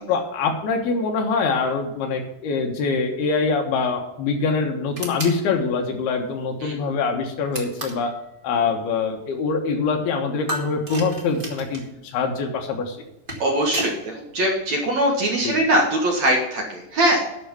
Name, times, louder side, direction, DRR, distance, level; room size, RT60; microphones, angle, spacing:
voice 1, 0.1-8.1 8.4-13.0 15.4-15.6, left 4 dB, 75° left, 3 dB, 3.2 m, -24 dB
sound 1, 4.9-5.4 7.5-8.1 10.5-11.9 13.0-14.0, right 1 dB, 35° right, 0.8 m, -31 dB
voice 2, 13.4-17.3, right 1 dB, 55° right, -1 dB, 2.5 m, -21 dB
11.0 x 6.2 x 6.9 m, 0.91 s
omnidirectional pair, 4.7 m